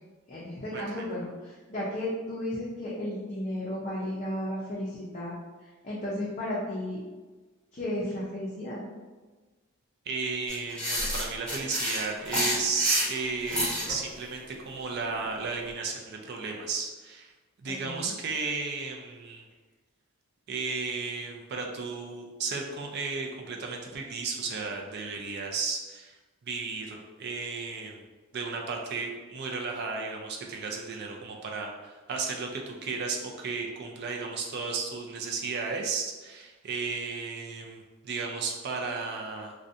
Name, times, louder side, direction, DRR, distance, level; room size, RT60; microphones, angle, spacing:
voice 1, 0.3-5.3 5.6-7.0 7.7-8.8 17.6-18.1, left 1 dB, 35° left, -8 dB, 0.4 m, -34 dB
voice 2, 10.1-17.3 17.6-19.4 20.5-26.2 26.4-28.0 28.3-39.5, right 4 dB, 50° right, 1 dB, 0.4 m, -34 dB
sound 1, 10.5-13.9, equal, 5° left, 0.9 m, -29 dB
2.4 x 2.1 x 2.6 m, 1.3 s
head